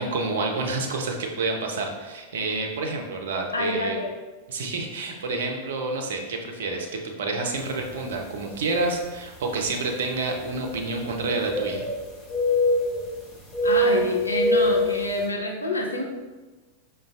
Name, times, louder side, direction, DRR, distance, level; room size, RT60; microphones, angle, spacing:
voice 1, 0.0-4.0 4.5-11.9, right 3 dB, 60° right, 2 dB, 0.5 m, -29 dB
voice 2, 3.5-4.1 13.6-16.1, left 2 dB, 80° left, 0 dB, 0.5 m, -27 dB
sound 1, 7.9-8.0 8.8-8.9 10.8-12.0 12.3-13.1 13.5-14.9, equal, 20° left, 0.9 m, -23 dB
5.0 x 2.2 x 2.4 m, 1.2 s
figure-of-eight pair, 90°, 0 cm